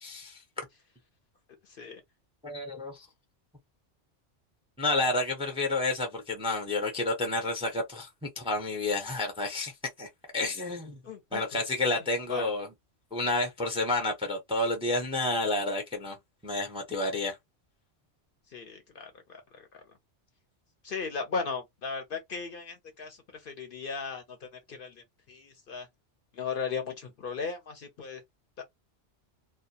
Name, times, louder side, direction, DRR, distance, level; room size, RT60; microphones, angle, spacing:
voice 1, 0.0-0.4 2.4-3.1 4.8-9.7 10.0-10.1 10.3-11.0 11.3-12.7 13.1-16.2 16.4-17.4, left 2 dB, 5° right, 0.5 m, -30 dB
voice 2, 1.7-2.0 11.0-11.6 12.3-12.5 18.5-19.1 19.5-19.6 20.8-25.9 26.3-28.2 28.6-28.7, left 5 dB, 60° left, 0.7 m, -37 dB
2.2 x 2.1 x 2.6 m
omnidirectional pair, 1.2 m